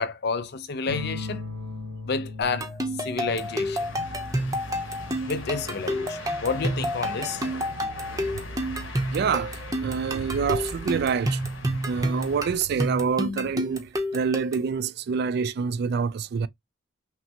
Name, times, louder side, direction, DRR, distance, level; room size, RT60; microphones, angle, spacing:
voice 1, 0.0-1.4 2.1-2.7 3.0-3.8 5.3-7.4, left 4 dB, 55° left, 0.6 m, -29 dB
sound 1, 0.9-10.0 11.4-12.0, left 3 dB, 85° right, 1.1 m, -41 dB
sound 2, 2.4-14.7, equal, 20° right, 0.7 m, -30 dB
sound 3, 3.2-12.6, left 2 dB, 80° left, 1.2 m, -40 dB
voice 2, 9.1-16.5, right 6 dB, 55° right, 0.3 m, -27 dB
5.8 x 2.1 x 2.8 m
head